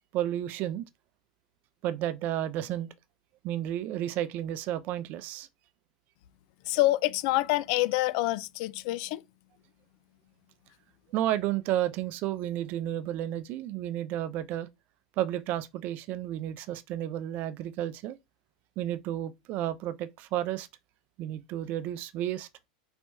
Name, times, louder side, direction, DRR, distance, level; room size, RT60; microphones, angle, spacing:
voice 1, 0.1-0.8 1.8-2.9 3.4-5.5 11.1-14.7 15.2-18.2 18.8-20.7 21.2-22.5, right 12 dB, 45° right, 0.6 m, -32 dB
voice 2, 6.6-9.2, left 18 dB, 55° left, 0.5 m, -27 dB
4.4 x 4.4 x 2.7 m
hypercardioid pair, 105°, 4 cm